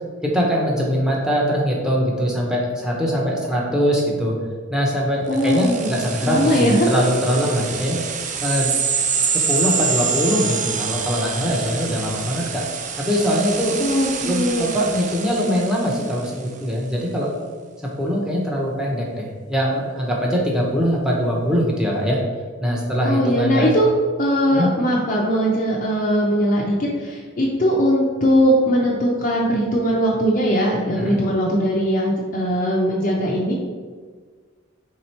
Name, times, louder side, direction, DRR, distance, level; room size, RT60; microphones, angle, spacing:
voice 1, 0.2-4.3 4.7-8.0 8.4-8.7 9.3-12.7 13.0-13.8 14.2-17.3 18.0-22.2 22.6-23.7 24.5-24.7 31.0-31.2, equal, 5° right, -3 dB, 0.6 m, -22 dB
voice 2, 5.3-5.9 6.2-6.9 13.8-14.7 22.9-23.9 24.2-33.5, equal, 40° left, -3 dB, 0.4 m, -20 dB
sound 1, 5.3-16.4, right 6 dB, 35° right, 0.3 m, -26 dB
3.6 x 2.8 x 4.3 m, 1.5 s
head